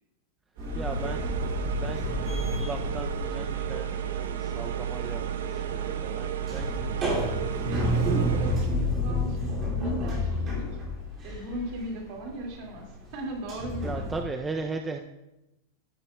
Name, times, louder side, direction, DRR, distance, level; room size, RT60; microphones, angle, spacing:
sound 1, 0.6-4.3 4.6-14.2, left 1 dB, 25° right, 2.3 m, -30 dB
sound 2, 0.6-8.7, right 9 dB, 85° right, 0.6 m, -32 dB
voice 1, 0.7-1.3 1.7-7.4 13.8-15.0, right 3 dB, 10° right, 4 dB, 0.3 m, -38 dB
voice 2, 7.6-10.7 11.2-12.9 13.1-14.1, right 1 dB, 45° right, 0 dB, 2.1 m, -37 dB
14.0 x 7.1 x 2.2 m, 0.92 s
supercardioid pair, 165°, 0 cm